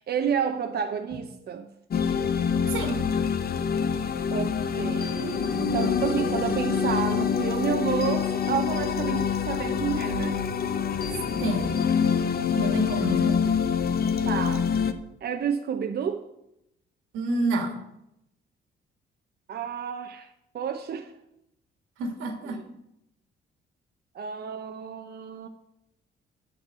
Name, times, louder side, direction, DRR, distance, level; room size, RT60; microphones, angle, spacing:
voice 1, 0.0-1.7 4.3-10.4 14.2-14.7 15.2-16.2 19.5-21.1 22.5-22.6 24.1-25.5, right 7 dB, 55° right, 0.9 m, -30 dB
sound 1, 1.9-14.9, left 6 dB, 50° left, 0.9 m, -26 dB
voice 2, 2.7-3.0 11.4-11.8 12.6-13.4 17.1-17.8 22.0-22.6, right 2 dB, 90° right, 2.1 m, -29 dB
9.2 x 6.6 x 8.1 m
cardioid pair, 90°, 20 cm